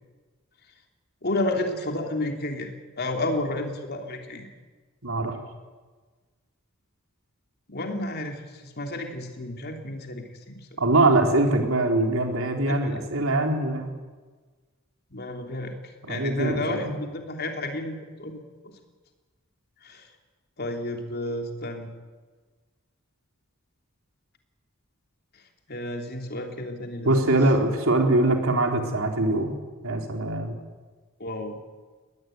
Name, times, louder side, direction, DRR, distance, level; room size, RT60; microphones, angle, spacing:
voice 1, 1.2-4.5 7.7-10.8 12.7-13.0 15.1-18.5 19.8-20.1 20.6-21.9 25.3-25.4 25.7-27.4 31.2-31.6, left 1 dB, 50° left, 3 dB, 3.2 m, -32 dB
voice 2, 5.0-5.4 10.8-13.9 16.0-16.9 27.0-29.6 29.8-30.6, right 2 dB, 75° right, 3 dB, 3.8 m, -23 dB
21.5 x 19.5 x 9.3 m, 1.4 s
head